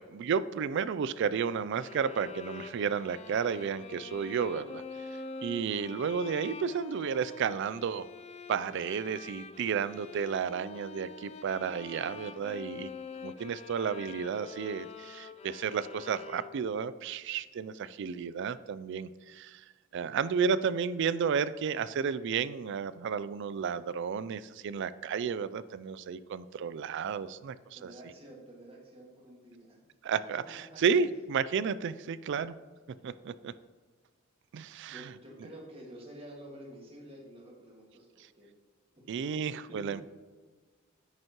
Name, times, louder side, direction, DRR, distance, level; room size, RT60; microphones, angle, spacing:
voice 1, 0.0-4.8 5.4-8.1 8.5-12.9 13.2-19.6 19.9-27.9 30.0-32.6 33.0-33.5 34.5-35.1 39.1-40.0, right 6 dB, 60° right, 16 dB, 0.3 m, -32 dB
sound 1, 1.8-16.9, left 4 dB, 30° left, 0.3 m, -46 dB
voice 2, 27.7-29.8 31.0-31.1 34.9-38.5 39.3-39.4 39.7-40.0, equal, 30° right, -2 dB, 1.9 m, -49 dB
8.9 x 6.4 x 3.0 m, 1.4 s
head